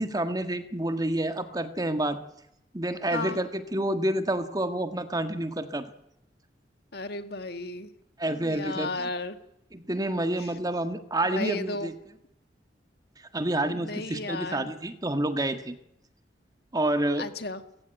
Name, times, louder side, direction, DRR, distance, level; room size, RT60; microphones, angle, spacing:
voice 1, 0.0-2.2 2.7-5.9 8.2-9.1 9.7-11.9 13.3-15.8 16.7-17.3, right 1 dB, 20° right, 9 dB, 1.6 m, -28 dB
voice 2, 6.9-7.9 8.3-9.4 10.4-10.5 11.3-11.9 13.7-14.7 17.2-17.6, left 2 dB, 60° left, 9 dB, 1.8 m, -34 dB
29.5 x 16.0 x 9.2 m, 0.83 s
head